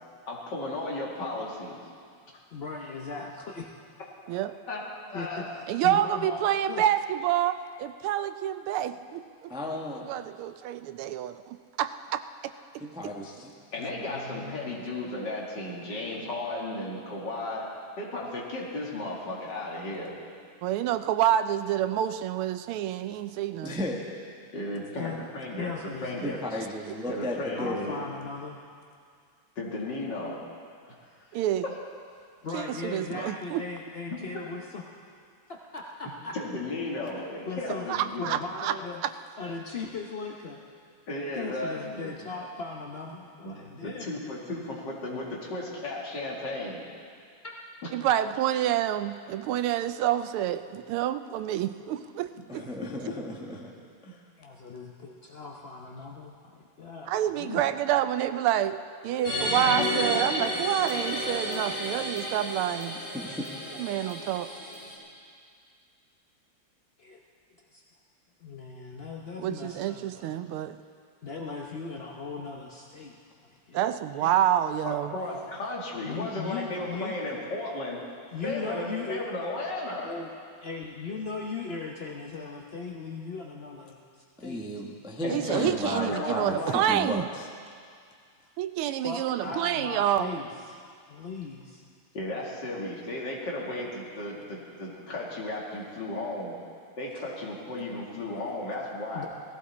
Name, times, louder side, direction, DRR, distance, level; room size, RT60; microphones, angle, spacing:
voice 1, 0.3-1.8 4.3-4.4 4.7-4.8 5.1-5.6 13.7-17.7 18.0-20.1 24.5-25.7 26.0-26.4 27.1-28.0 29.6-30.4 34.1-34.2 36.3-38.3 41.1-42.1 43.4-46.8 52.5-52.7 74.8-78.0 78.4-80.1 85.2-86.8 92.1-96.6 97.0-99.3, left 2 dB, 55° left, -3 dB, 2.8 m, -34 dB
voice 2, 2.5-3.7 5.1-6.8 13.8-14.7 25.0-25.2 25.6-26.7 27.6-28.6 32.4-34.8 35.5-36.4 37.1-37.9 38.2-39.0 39.4-40.6 41.3-44.2 47.4-47.5 54.4-56.3 56.8-57.6 67.0-67.2 67.7-67.8 68.4-70.3 71.2-73.2 73.7-74.3 76.0-77.2 78.3-79.3 80.0-80.3 80.6-84.6 85.6-85.7 88.9-90.8 91.0-91.8 99.1-99.3, left 4 dB, 70° left, -1 dB, 0.5 m, -38 dB
voice 3, 5.7-9.5 10.0-12.2 20.6-23.8 31.3-31.7 32.5-33.6 37.9-38.7 39.0-39.1 47.9-52.7 57.1-63.0 63.8-64.5 69.4-70.8 73.7-75.1 85.3-87.2 88.6-90.3, right 11 dB, 80° right, 11 dB, 1.4 m, -28 dB
voice 4, 9.5-10.1 12.8-13.5 23.6-24.1 26.1-27.9 52.5-53.7 54.0-54.2 63.1-63.4 84.4-87.2, left 1 dB, 5° right, -1 dB, 0.7 m, -34 dB
sound 1, 59.2-64.9, left 1 dB, 35° left, 3.8 m, -31 dB
18.0 x 15.0 x 4.3 m, 2.2 s
omnidirectional pair, 2.4 m